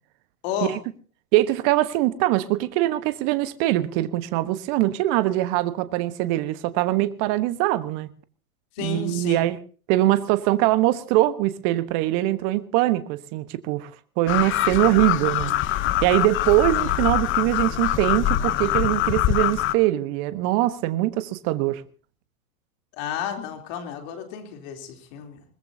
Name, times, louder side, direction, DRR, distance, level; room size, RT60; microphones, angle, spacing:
voice 1, 0.4-0.8 8.8-9.4 22.9-25.4, left 9 dB, 45° left, 5 dB, 3.4 m, -32 dB
voice 2, 1.3-8.1 8.8-9.6 9.9-13.9 14.2-15.5 15.8-21.8, right 16 dB, 40° right, 13 dB, 1.3 m, -22 dB
sound 1, 14.3-19.7, left 13 dB, 25° left, 0.9 m, -24 dB
21.5 x 21.0 x 2.8 m, 0.37 s
hypercardioid pair, 110°, 44 cm